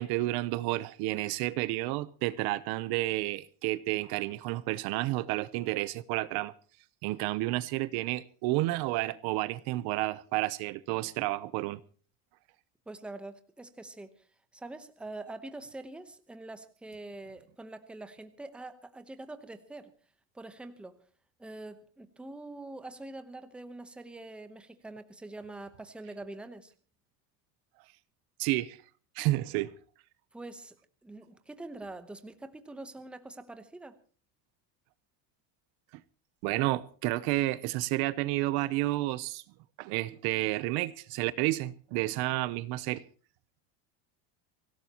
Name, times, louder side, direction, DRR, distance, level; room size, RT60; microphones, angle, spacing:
voice 1, 0.0-6.5 7.0-11.8 28.4-28.8 29.2-29.7 36.4-39.4 39.8-43.0, right 18 dB, 50° right, 0.8 m, -31 dB
voice 2, 12.9-14.3 14.5-19.9 20.3-21.0 21.4-26.7 30.3-30.8 31.0-34.0, right 2 dB, ahead, 0.9 m, -44 dB
24.5 x 17.0 x 2.9 m
cardioid pair, 170°, 49 cm